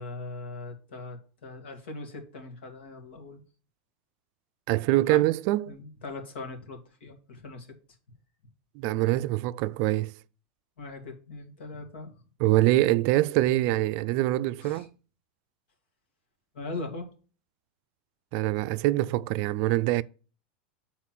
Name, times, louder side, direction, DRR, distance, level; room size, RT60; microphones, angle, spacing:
voice 1, 0.0-3.4 5.0-5.2 5.7-7.7 10.8-12.1 14.6-14.9 16.5-17.1, left 3 dB, 85° left, 2.2 m, -40 dB
voice 2, 4.7-5.8 8.8-10.1 12.4-14.9 18.3-20.0, right 17 dB, 50° right, 0.3 m, -24 dB
7.4 x 4.3 x 5.9 m
supercardioid pair, 140°, 6 cm